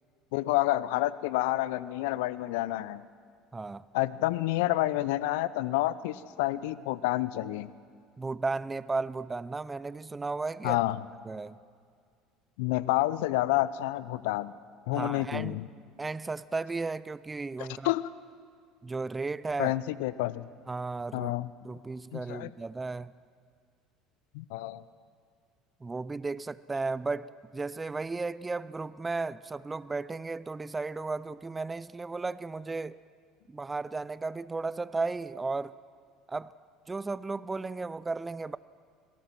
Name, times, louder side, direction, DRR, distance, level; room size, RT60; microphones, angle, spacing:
voice 1, 0.3-3.0 3.9-7.7 10.6-11.1 12.6-14.5 14.9-15.7 17.6-18.1 19.6-20.5 21.1-21.5 22.1-22.5 24.3-24.8, left 16 dB, 70° left, 17 dB, 0.6 m, -29 dB
voice 2, 3.5-3.8 8.2-10.8 11.3-11.6 14.9-15.6 16.0-17.9 18.8-19.8 20.7-21.3 21.6-23.1 25.8-33.0 33.5-35.7 36.3-36.5 36.9-38.6, right 3 dB, 20° right, 18 dB, 0.5 m, -34 dB
26.0 x 18.0 x 6.0 m, 2.1 s
hypercardioid pair, 70°, 0 cm